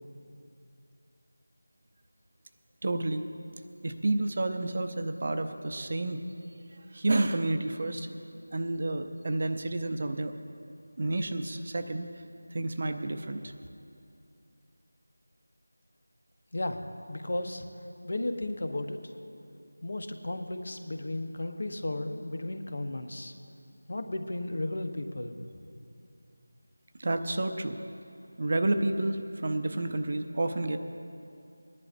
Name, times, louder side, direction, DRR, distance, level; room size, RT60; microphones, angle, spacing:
voice 1, 2.8-3.3 3.8-6.2 6.7-8.1 8.5-10.3 11.0-12.1 12.5-13.5 27.0-27.8 28.4-30.8, right 2 dB, 35° right, 8 dB, 0.6 m, -30 dB
voice 2, 17.1-17.7 18.0-19.1 19.8-23.3 23.9-25.4, left 1 dB, 55° left, 7 dB, 0.9 m, -34 dB
24.0 x 11.0 x 2.6 m, 2.6 s
figure-of-eight pair, 175°, 0 cm